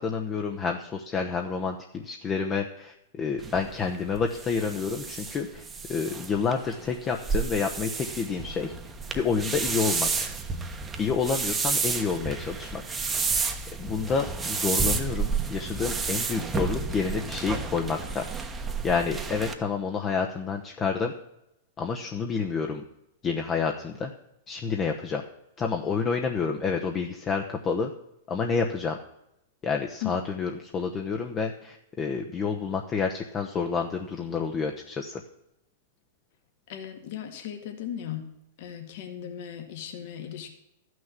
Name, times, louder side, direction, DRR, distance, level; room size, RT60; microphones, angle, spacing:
voice 1, 0.0-5.6 5.9-8.7 9.1-10.3 11.0-12.8 13.8-18.2 18.8-21.1 21.8-22.8 23.2-24.1 24.5-25.2 25.6-27.9 28.3-29.0 29.6-35.2, left 5 dB, 25° left, 3 dB, 1.0 m, -29 dB
sound 1, 3.4-19.5, right 4 dB, 15° right, 1.1 m, -31 dB
voice 2, 36.7-38.3 38.6-40.5, left 10 dB, 60° left, 5 dB, 2.1 m, -37 dB
13.0 x 6.3 x 7.6 m, 0.83 s
hypercardioid pair, 125°, 0 cm